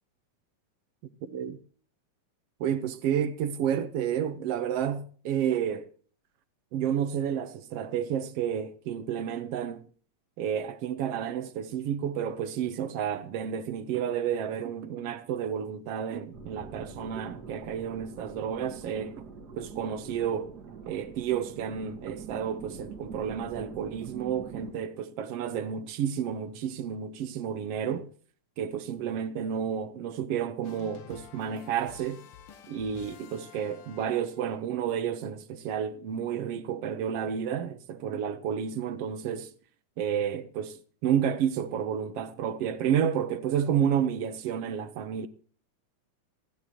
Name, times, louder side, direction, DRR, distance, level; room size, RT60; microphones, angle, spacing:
voice 1, 1.2-1.6 2.6-5.9 6.7-9.8 10.4-19.2 19.6-20.5 20.9-28.1 28.6-32.3 32.7-39.5 40.0-45.3, right 8 dB, 65° right, 1.8 m, -31 dB
sound 1, 16.3-24.7, right 5 dB, 40° right, 1.8 m, -44 dB
sound 2, 30.6-34.5, left 8 dB, 65° left, 1.5 m, -51 dB
20.5 x 15.0 x 3.0 m
omnidirectional pair, 3.4 m